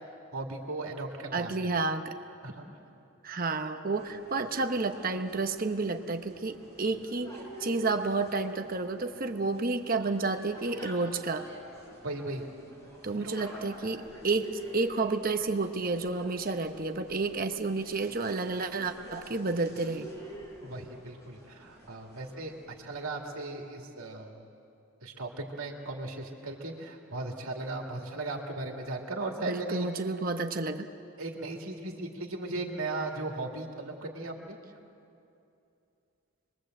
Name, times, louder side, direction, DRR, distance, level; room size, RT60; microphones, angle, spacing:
voice 1, 0.3-1.7 2.4-2.6 12.0-12.5 13.2-13.4 20.6-22.5 22.8-24.4 25.0-29.9 31.2-34.6, right 2 dB, 80° right, 1 dB, 2.2 m, -37 dB
voice 2, 1.3-2.0 3.2-7.3 7.6-11.5 13.0-20.1 29.5-30.9, right 3 dB, 40° right, 6 dB, 1.0 m, -30 dB
sound 1, 3.9-23.2, equal, 15° left, 5.1 m, -48 dB
27.0 x 22.0 x 7.8 m, 2.7 s
head